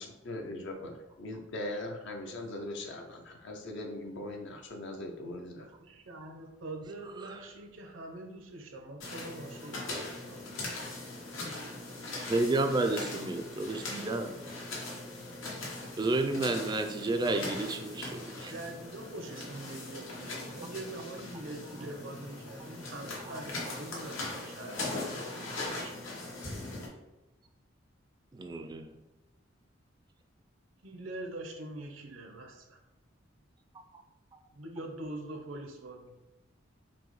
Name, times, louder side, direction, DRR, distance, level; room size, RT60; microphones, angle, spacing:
voice 1, 0.0-5.7, left 1 dB, 65° left, 2 dB, 0.5 m, -40 dB
voice 2, 5.8-10.5 11.4-11.8 17.5-17.8 18.5-26.3 30.8-32.8 34.5-36.2, right 2 dB, 80° right, 3 dB, 0.7 m, -44 dB
sound 1, 9.0-26.9, left 2 dB, 85° left, 1.0 m, -40 dB
voice 3, 12.3-14.3 16.0-18.5 22.6-22.7 23.2-23.4 28.3-29.0 33.9-34.0 34.3-34.4, right 2 dB, 20° right, 6 dB, 0.3 m, -31 dB
5.9 x 2.1 x 3.1 m, 0.99 s
head